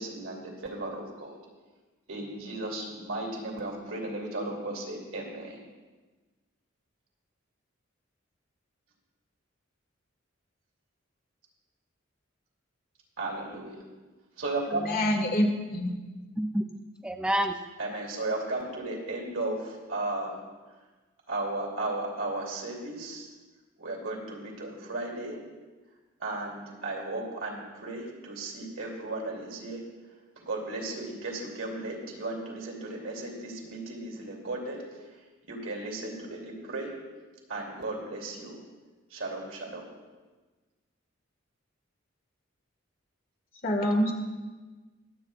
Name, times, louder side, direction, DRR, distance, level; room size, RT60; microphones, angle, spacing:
voice 1, 0.0-1.4 2.1-5.6 13.2-13.8 14.4-14.8 17.8-20.4 21.3-23.3 23.8-25.4 26.2-29.8 30.4-34.8 35.4-36.9 37.5-38.6 39.1-39.9, right 2 dB, 90° right, -1 dB, 2.9 m, -35 dB
voice 2, 14.8-15.9 43.6-44.1, equal, 50° left, 1 dB, 1.8 m, -26 dB
voice 3, 17.0-17.5, equal, 5° right, 4 dB, 0.4 m, -27 dB
22.5 x 8.6 x 2.4 m, 1.3 s
head